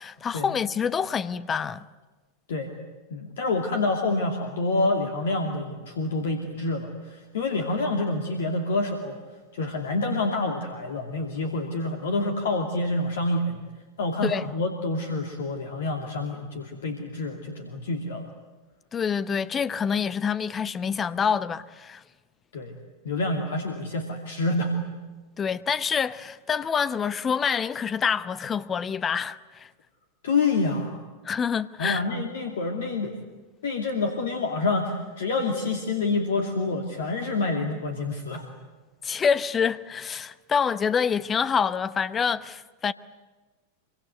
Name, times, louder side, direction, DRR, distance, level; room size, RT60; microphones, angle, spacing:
voice 1, 0.0-1.9 14.2-14.5 18.9-22.0 25.4-29.7 31.2-32.0 39.0-42.9, left 6 dB, 20° left, 0.9 m, -26 dB
voice 2, 3.1-9.2 9.5-13.6 14.0-18.3 22.5-22.8 23.0-24.7 30.2-31.0 31.8-33.1 33.6-38.4, left 2 dB, 60° left, 2.6 m, -27 dB
25.5 x 24.5 x 8.2 m
figure-of-eight pair, 90°, 0 cm